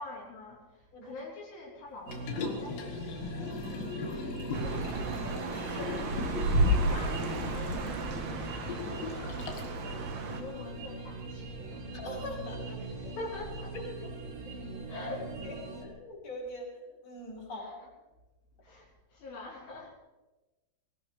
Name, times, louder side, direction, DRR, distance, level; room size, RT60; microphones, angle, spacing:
voice 1, 0.0-3.0 3.3-5.4 6.6-12.0 13.0-13.8 14.9-15.5 17.5-17.7 18.6-19.9, left 3 dB, 65° left, -5 dB, 5.6 m, -45 dB
Liquid, 2.1-9.8 10.2-10.3, left 5 dB, 85° left, 4.1 m, -39 dB
sound 1, 2.1-15.9, right 3 dB, 45° right, 2.6 m, -42 dB
voice 2, 4.5-6.6 11.9-13.1 13.7-14.1 14.4-14.6 14.8-14.9 15.4-17.9, left 1 dB, 30° left, -5 dB, 5.5 m, -44 dB
sound 2, 4.5-10.4, right 1 dB, 90° right, 1.3 m, -32 dB
22.0 x 18.5 x 3.4 m, 1.1 s
omnidirectional pair, 5.2 m